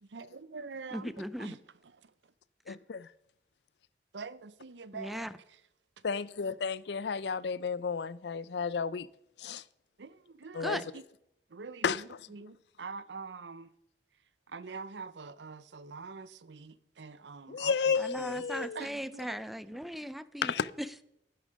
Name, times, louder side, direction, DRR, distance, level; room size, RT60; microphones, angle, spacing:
voice 1, 0.0-2.3 4.1-5.6 6.0-6.1 10.0-11.1 11.5-13.7 14.5-18.5 18.7-19.4 19.7-20.1, right 4 dB, 85° right, 0.7 m, -46 dB
voice 2, 0.9-1.6 2.7-2.8 4.9-5.3 10.6-10.8 18.0-20.5 20.8-21.0, equal, ahead, 0.5 m, -38 dB
voice 3, 2.7-3.1 6.0-9.1 9.4-9.6 10.5-10.8 11.8-12.0 17.5-18.8 20.4-20.7, left 5 dB, 70° left, 0.5 m, -32 dB
12.0 x 10.5 x 5.2 m
head